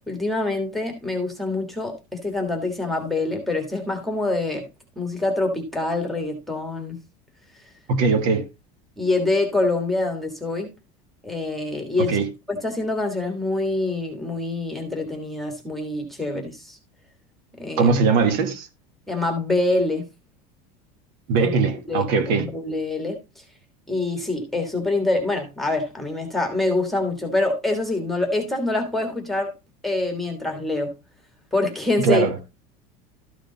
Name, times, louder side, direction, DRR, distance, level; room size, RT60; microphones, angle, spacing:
voice 1, 0.1-4.6 4.9-7.0 9.0-10.7 11.2-12.1 12.6-16.8 17.6-17.9 19.1-20.0 21.4-21.5 21.9-22.0 22.4-23.2 23.9-29.5 29.8-30.9 31.5-32.2, left 2 dB, ahead, 1.6 m, -25 dB
voice 2, 7.9-8.5 12.0-12.3 17.8-18.7 21.3-22.5 32.0-32.4, right 5 dB, 50° right, 1.5 m, -20 dB
13.0 x 5.0 x 3.9 m
cardioid pair, 170°, 19 cm